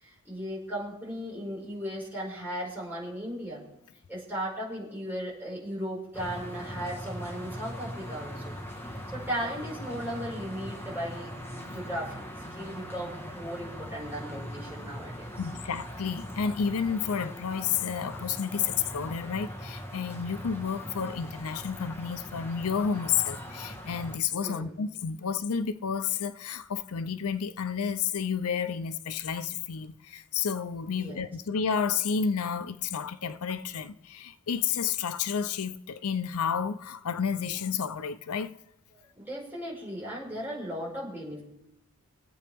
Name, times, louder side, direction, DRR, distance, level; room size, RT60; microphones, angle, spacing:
voice 1, 0.0-3.6 4.1-8.5 9.1-11.3 11.7-12.1 12.5-15.3 24.4-24.7 31.0-31.2 39.2-41.4, equal, 10° right, 5.1 m, -36 dB
sound 1, 6.1-24.2, equal, 10° left, 1.4 m, -41 dB
voice 2, 15.4-38.6, left 6 dB, 75° left, 0.6 m, -31 dB
24.5 x 8.6 x 3.5 m
head